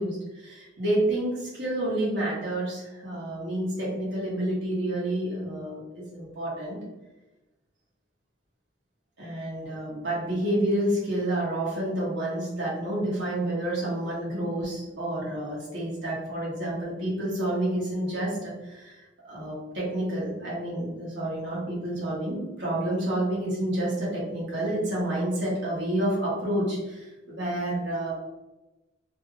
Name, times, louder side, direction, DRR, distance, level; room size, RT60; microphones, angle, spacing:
voice 1, 0.0-6.8 9.2-28.1, right 1 dB, 65° right, -7 dB, 1.3 m, -29 dB
3.0 x 2.4 x 3.2 m, 1.1 s
head